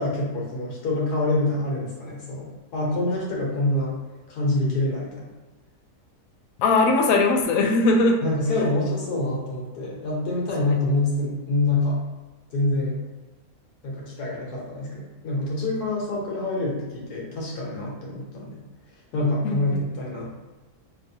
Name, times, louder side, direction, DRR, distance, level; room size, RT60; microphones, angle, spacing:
voice 1, 0.0-3.9 4.3-5.3 8.2-12.0 12.5-13.0 13.8-18.6 19.1-20.3, left 2 dB, 90° left, -4 dB, 1.5 m, -26 dB
voice 2, 6.6-8.2 8.5-8.6 19.4-19.8, left 3 dB, 70° left, 2 dB, 1.0 m, -20 dB
5.5 x 2.4 x 2.7 m, 1.2 s
omnidirectional pair, 1.6 m